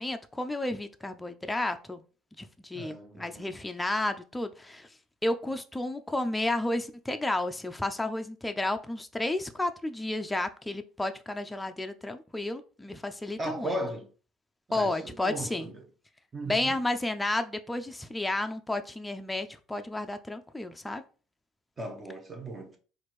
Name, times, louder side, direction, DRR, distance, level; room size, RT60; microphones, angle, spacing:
voice 1, 0.0-2.0 2.4-4.9 5.2-13.7 14.7-15.7 16.5-21.0, left 2 dB, 10° left, 0.4 m, -32 dB
voice 2, 2.7-3.5 13.4-14.1 14.7-15.8 16.3-16.8 21.8-22.8, right 1 dB, 25° right, 0.7 m, -37 dB
4.2 x 2.5 x 3.1 m
supercardioid pair, 95°, 0 cm